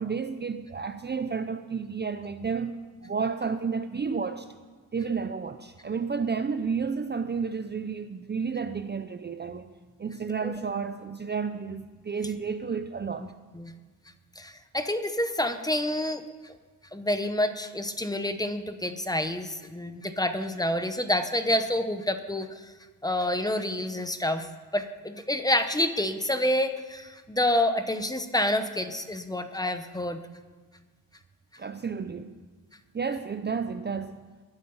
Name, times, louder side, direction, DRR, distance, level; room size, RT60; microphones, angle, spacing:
voice 1, 0.0-4.5 4.9-9.7 10.0-13.3 31.6-32.3 32.9-34.2, right 5 dB, 30° right, 0.5 m, -31 dB
voice 2, 14.4-16.5 16.9-22.6 23.0-24.5 24.7-30.2, left 1 dB, 10° left, 0.9 m, -28 dB
20.0 x 11.5 x 5.6 m
wide cardioid pair, 145°, 37 cm